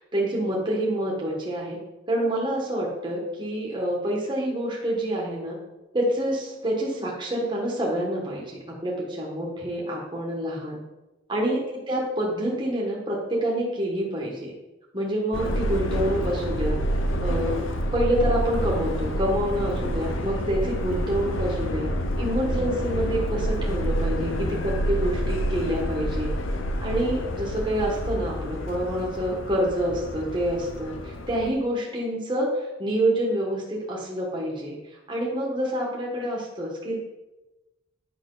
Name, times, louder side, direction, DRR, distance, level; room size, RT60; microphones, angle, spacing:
voice 1, 0.1-1.8 2.1-5.6 5.9-10.8 11.3-14.5 14.9-16.8 17.2-17.6 17.9-21.9 22.2-26.3 26.8-36.9, right 1 dB, 25° right, -3 dB, 1.4 m, -27 dB
Subway metro underground, 15.3-31.5, equal, 80° left, 0.9 m, -28 dB
9.0 x 6.2 x 3.9 m, 1.0 s
head